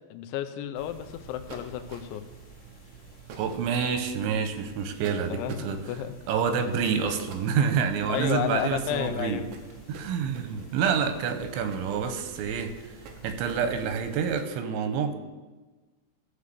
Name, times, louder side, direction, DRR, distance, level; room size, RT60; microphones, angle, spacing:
voice 1, 0.1-2.2 5.3-6.2 8.1-9.5, left 10 dB, 85° left, 10 dB, 3.1 m, -32 dB
sound 1, 0.7-14.4, right 4 dB, 15° left, 2.4 m, -49 dB
sound 2, 1.5-2.3 3.3-3.9 5.0-5.7 6.8-14.5, right 5 dB, 70° right, 2.2 m, -46 dB
voice 2, 3.4-5.8 6.3-9.4 9.9-12.7 13.2-15.2, right 6 dB, 90° right, 8 dB, 3.3 m, -27 dB
14.5 x 5.0 x 6.8 m, 1.2 s
omnidirectional pair, 5.2 m